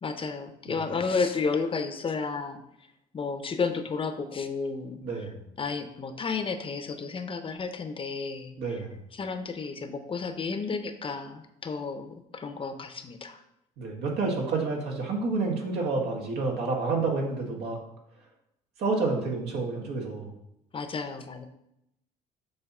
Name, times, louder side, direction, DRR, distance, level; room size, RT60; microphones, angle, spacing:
voice 1, 0.0-2.6 3.1-5.0 5.6-8.5 9.1-13.4 20.7-21.5, left 4 dB, 30° left, 8 dB, 0.7 m, -32 dB
voice 2, 5.0-5.4 8.6-8.9 13.8-17.8 18.8-20.3, right 3 dB, 75° right, 0 dB, 1.7 m, -29 dB
7.4 x 3.0 x 6.1 m, 0.82 s
cardioid pair, 110°, 17 cm